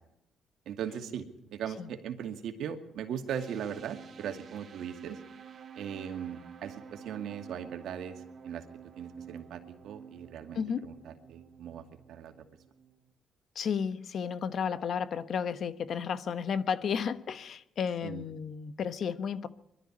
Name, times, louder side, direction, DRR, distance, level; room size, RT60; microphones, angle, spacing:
voice 1, 0.7-1.3 1.5-5.2 5.8-8.6 9.0-12.3 18.0-18.2, right 8 dB, 75° right, 2.3 m, -39 dB
sound 1, 3.3-13.1, right 6 dB, 50° right, 2.3 m, -50 dB
voice 2, 10.5-10.9 13.5-19.5, left 7 dB, 60° left, 1.2 m, -33 dB
22.5 x 12.5 x 9.9 m
cardioid pair, 90°, 0 cm